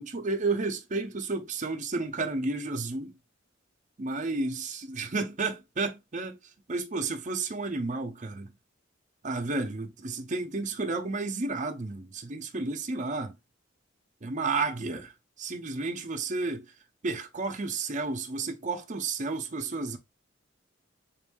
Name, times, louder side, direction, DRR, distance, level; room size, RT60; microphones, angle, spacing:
voice 1, 0.0-3.1 4.0-6.4 6.7-8.5 9.2-13.3 14.2-15.1 15.4-16.7 17.0-20.0, right 3 dB, 40° right, 0.7 m, -32 dB
3.9 x 2.6 x 3.6 m
head